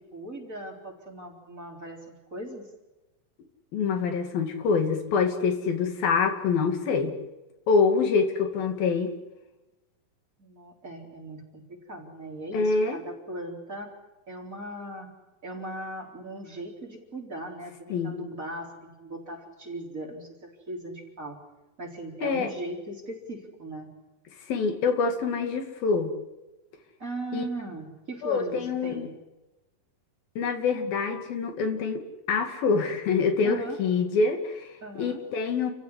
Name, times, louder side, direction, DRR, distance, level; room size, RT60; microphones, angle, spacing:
voice 1, 0.1-2.6 10.4-13.9 14.3-15.1 15.4-21.4 21.8-23.9 27.0-29.1 33.4-33.8 34.8-35.2, right 1 dB, 20° right, 0 dB, 4.3 m, -38 dB
voice 2, 3.7-7.2 7.7-9.2 12.5-13.0 17.9-18.2 22.2-22.5 24.5-26.1 27.3-27.5 28.2-29.1 30.4-32.0 32.3-34.7 35.0-35.7, left 5 dB, 85° left, 6 dB, 4.3 m, -25 dB
30.0 x 15.5 x 9.9 m, 1.0 s
omnidirectional pair, 4.1 m